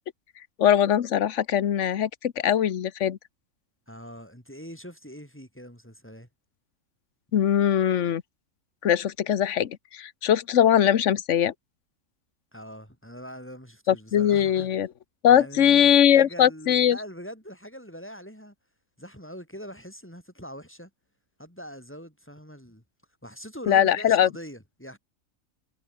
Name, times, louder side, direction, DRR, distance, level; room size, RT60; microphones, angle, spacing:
voice 1, 0.6-3.2 7.3-8.2 8.8-11.5 13.9-14.9 15.2-17.0 23.7-24.3, left 10 dB, 60° left, 1.2 m, -21 dB
voice 2, 3.9-6.3 12.5-14.7 15.2-18.5 19.0-20.9 21.4-22.8 23.2-25.0, equal, 10° left, 7.2 m, -42 dB
omnidirectional pair, 1.4 m